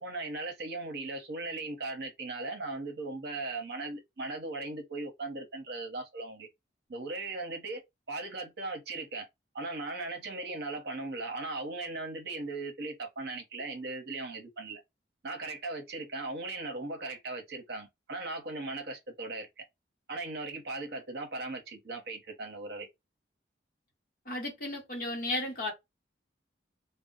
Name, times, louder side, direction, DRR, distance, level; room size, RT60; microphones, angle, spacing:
voice 1, 0.0-6.5 6.9-9.3 9.5-14.8 15.2-19.6 20.1-22.9, right 2 dB, 55° right, 0.8 m, -38 dB
voice 2, 24.3-25.7, left 1 dB, 50° left, 0.9 m, -34 dB
2.1 x 2.0 x 3.7 m
head